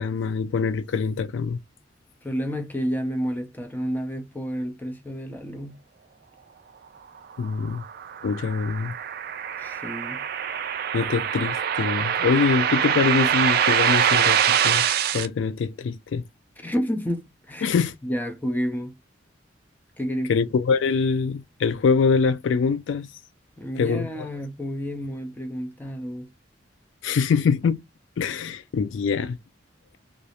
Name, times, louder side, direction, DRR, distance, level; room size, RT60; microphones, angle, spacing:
voice 1, 0.0-1.6 7.4-7.8 8.2-8.9 10.9-14.8 15.1-16.2 17.6-17.9 20.3-23.1 23.8-24.1 27.0-27.8 28.2-29.4, left 5 dB, 85° left, 0.3 m, -24 dB
voice 2, 2.2-5.8 9.6-10.2 16.6-17.8 18.0-19.0 20.0-20.3 23.6-26.3, equal, 10° left, 0.5 m, -30 dB
sound 1, 7.4-15.3, right 9 dB, 55° right, 0.3 m, -24 dB
2.4 x 2.0 x 2.8 m
head